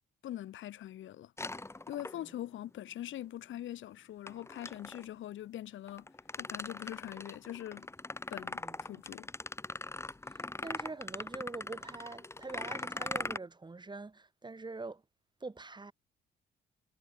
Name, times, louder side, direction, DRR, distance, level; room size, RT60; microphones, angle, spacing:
voice 1, 0.2-1.3 1.9-6.1 6.4-7.9 8.3-9.3, left 12 dB, 75° left, 2.0 m, -43 dB
sound 1, 1.4-2.5 4.3-5.1 5.9-13.4, left 2 dB, 15° left, 1.3 m, -41 dB
voice 2, 8.6-8.9 10.3-15.0 15.4-15.9, right 3 dB, 20° right, 5.2 m, -44 dB
cardioid pair, 90°, 20 cm